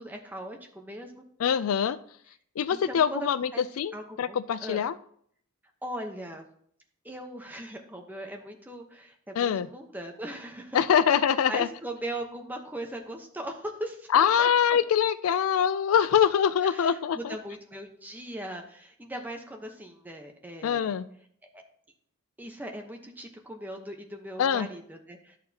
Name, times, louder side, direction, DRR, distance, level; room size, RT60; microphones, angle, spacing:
voice 1, 0.0-1.2 2.7-3.6 3.9-4.8 5.8-6.4 7.0-14.8 16.6-20.9 21.5-21.6 22.4-25.4, right 1 dB, 10° right, 3 dB, 0.9 m, -39 dB
voice 2, 1.4-2.0 2.6-5.0 9.4-9.7 10.7-11.7 14.1-17.4 20.6-21.1 24.4-24.7, left 8 dB, 75° left, 15 dB, 0.4 m, -24 dB
11.0 x 6.6 x 2.8 m, 0.64 s
head